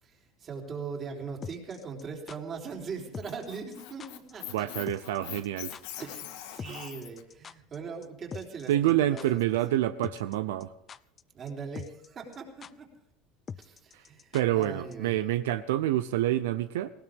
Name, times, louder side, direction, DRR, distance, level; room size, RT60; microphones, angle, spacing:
voice 1, 0.0-4.7 6.0-9.4 11.3-12.9 13.5-15.2, right 5 dB, 30° right, 1 dB, 3.6 m, -40 dB
sound 1, 1.4-2.4 3.1-3.5 3.7-3.8 4.0-4.3 4.6-4.7 4.9-5.2 5.4-5.5 5.7-5.8 6.6-7.8 8.0-8.1 8.3-8.9 9.2-9.3 10.0-10.4 10.6-11.2 11.5-11.6 11.8-12.1 12.3-12.4 12.6-12.7 13.5-14.7 14.9-15.0, left 7 dB, 25° left, 0.5 m, -42 dB
Squeak, 3.0-7.2, left 13 dB, 75° left, 1.8 m, -43 dB
voice 2, 4.5-5.7 8.7-10.7 14.3-16.9, right 13 dB, 90° right, 12 dB, 0.6 m, -27 dB
19.0 x 17.0 x 3.7 m, 0.79 s
supercardioid pair, 125°, 0 cm